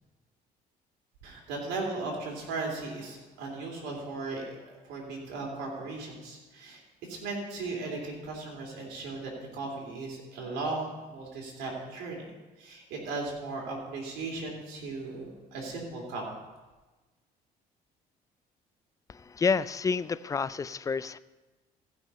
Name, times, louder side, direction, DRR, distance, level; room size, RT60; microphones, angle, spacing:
voice 1, 1.2-4.6 4.8-6.8 7.1-12.3 12.6-16.2, right 3 dB, 90° right, -1 dB, 3.2 m, -37 dB
voice 2, 19.4-21.2, left 5 dB, 20° left, 16 dB, 0.3 m, -28 dB
15.0 x 6.0 x 5.6 m, 1.2 s
cardioid pair, 110°, 17 cm